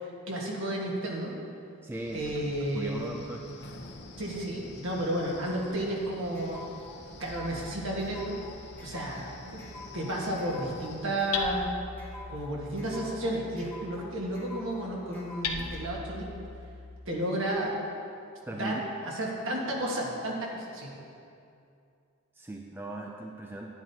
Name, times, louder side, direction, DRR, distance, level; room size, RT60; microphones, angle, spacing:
voice 1, 0.0-1.4 2.1-3.2 4.2-6.6 7.2-8.5 8.8-9.6 9.9-11.7 12.3-16.3 17.0-17.8 18.5-21.0, right 1 dB, 60° right, -2 dB, 1.6 m, -32 dB
voice 2, 1.8-3.4 18.5-18.8 22.3-23.7, right 2 dB, 10° right, 1 dB, 0.3 m, -38 dB
Wind, 1.9-11.1, left 2 dB, 50° left, 0.8 m, -48 dB
sound 1, 5.7-15.8, left 3 dB, 10° left, 1.1 m, -48 dB
Hammer, 7.2-17.0, left 4 dB, 85° left, 0.7 m, -42 dB
10.5 x 10.5 x 2.8 m, 2.5 s
head